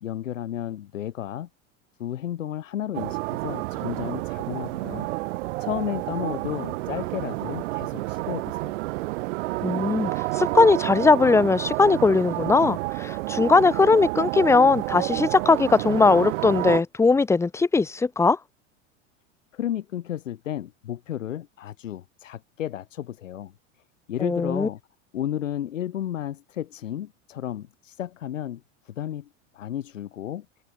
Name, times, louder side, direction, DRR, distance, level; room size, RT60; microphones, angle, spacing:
voice 1, 0.0-1.5 2.0-5.1 5.6-8.8 19.5-23.5 24.1-24.8 25.1-29.3 29.5-30.5, left 11 dB, 90° left, 2.3 m, -33 dB
sound 1, 2.9-16.8, right 21 dB, 70° right, 4.7 m, -29 dB
voice 2, 9.6-18.4 24.2-24.7, left 4 dB, 10° left, 0.5 m, -20 dB
hypercardioid pair, 100°, 37 cm